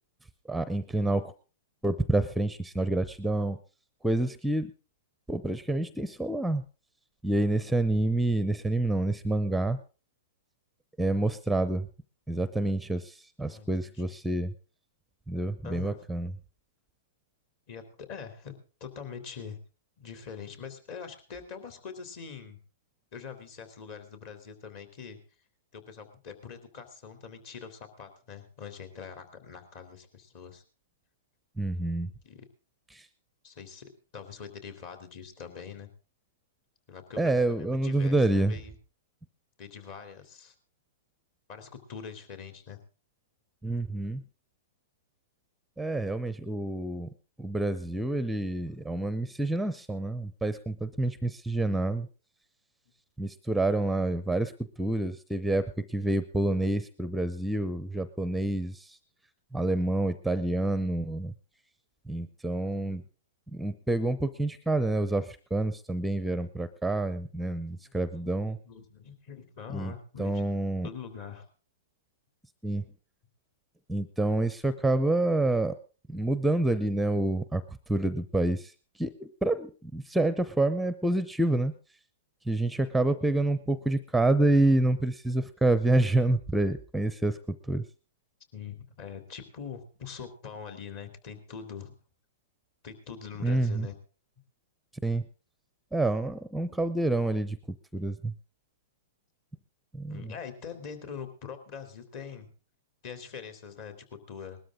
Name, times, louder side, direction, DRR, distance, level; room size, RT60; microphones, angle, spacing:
voice 1, 0.5-1.3 1.8-3.6 4.0-4.7 5.3-6.6 7.2-9.8 11.0-11.9 12.3-14.5 15.3-16.3 31.6-32.1 32.9-33.0 37.2-38.5 43.6-44.2 45.8-47.1 47.4-52.1 53.2-54.5 54.8-59.0 59.5-61.3 62.1-63.0 63.5-68.6 69.7-69.9 70.2-70.9 72.6-72.8 73.9-75.7 76.1-77.6 77.9-78.7 79.0-81.7 82.5-87.4 87.7-87.8 93.4-93.9 95.0-95.2 95.9-97.6 97.9-98.3 99.9-100.3, right 2 dB, 5° right, 14 dB, 0.6 m, -28 dB
voice 2, 13.4-14.1 15.6-16.0 17.7-19.6 20.0-22.6 23.1-25.2 25.7-30.6 32.2-32.5 33.4-35.9 36.9-38.7 39.6-40.5 41.5-42.8 48.8-48.9 62.7-63.0 67.5-70.4 70.8-71.5 88.5-91.9 92.8-93.9 100.1-102.5 103.0-104.6, left 6 dB, 50° left, 8 dB, 3.3 m, -43 dB
19.5 x 13.0 x 3.7 m, 0.35 s
hypercardioid pair, 130°, 0 cm